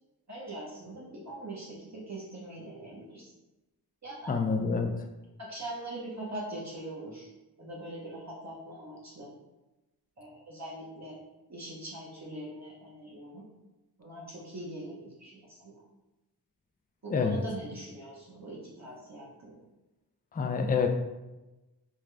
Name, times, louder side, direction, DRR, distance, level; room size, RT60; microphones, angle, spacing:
voice 1, 0.3-3.3 4.0-4.4 5.4-7.3 7.6-9.3 10.2-11.2 11.5-13.4 14.0-15.7 17.0-19.6, right 1 dB, 40° right, -5 dB, 0.9 m, -42 dB
voice 2, 4.3-4.9 17.1-17.4 20.3-20.9, left 5 dB, 25° left, 4 dB, 0.3 m, -27 dB
3.6 x 2.3 x 3.2 m, 1.0 s
wide cardioid pair, 55°, 41 cm